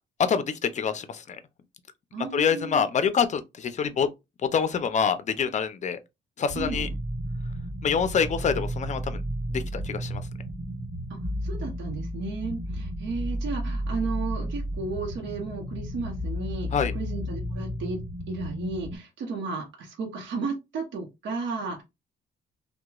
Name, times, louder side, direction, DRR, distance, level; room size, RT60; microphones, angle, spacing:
voice 1, 0.3-1.4 2.3-4.1 4.4-6.0 6.4-6.9 7.8-9.2 9.5-10.2 16.7-16.9, left 6 dB, 35° left, 0.5 m, -26 dB
voice 2, 2.1-2.8 6.6-6.9 11.1-18.0 18.3-21.8, right 4 dB, 70° right, 0.9 m, -34 dB
sound 1, 6.5-19.0, equal, 45° right, 1.7 m, -33 dB
2.8 x 2.2 x 2.3 m
cardioid pair, 90°, 20 cm